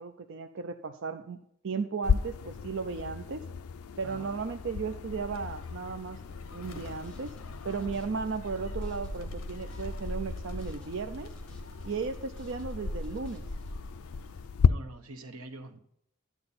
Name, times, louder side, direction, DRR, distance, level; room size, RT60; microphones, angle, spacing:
voice 1, 0.0-1.4 1.6-3.4 4.0-6.2 6.5-7.4 7.6-11.3 11.8-13.4, right 5 dB, 55° right, 6 dB, 0.4 m, -35 dB
sound 1, 2.0-14.7, left 6 dB, 80° left, 0.4 m, -35 dB
voice 2, 4.0-4.4 14.6-15.8, right 2 dB, 75° right, 7 dB, 1.0 m, -45 dB
Gull seagull, 5.1-14.5, left 1 dB, 65° left, 1.1 m, -41 dB
sound 2, 6.6-13.7, equal, 5° left, 2.0 m, -57 dB
12.0 x 8.7 x 4.1 m, 0.72 s
head